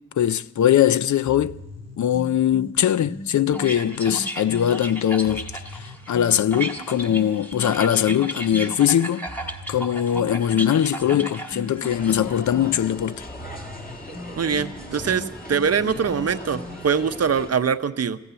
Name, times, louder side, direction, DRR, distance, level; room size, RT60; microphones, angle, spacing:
voice 1, 0.2-1.6 2.0-5.5 5.8-9.2 9.7-13.2, left 10 dB, 75° left, 0.5 m, -21 dB
sound 1, 1.3-4.8 5.3-8.8 9.3-17.1, left 1 dB, 60° left, 2.4 m, -39 dB
sound 2, 3.5-12.1, right 1 dB, 5° left, 1.5 m, -35 dB
sound 3, 11.9-17.5, left 1 dB, 30° left, 2.0 m, -39 dB
voice 2, 14.4-18.2, right 6 dB, 55° right, 0.7 m, -23 dB
15.0 x 9.6 x 9.9 m
wide cardioid pair, 100°, 29 cm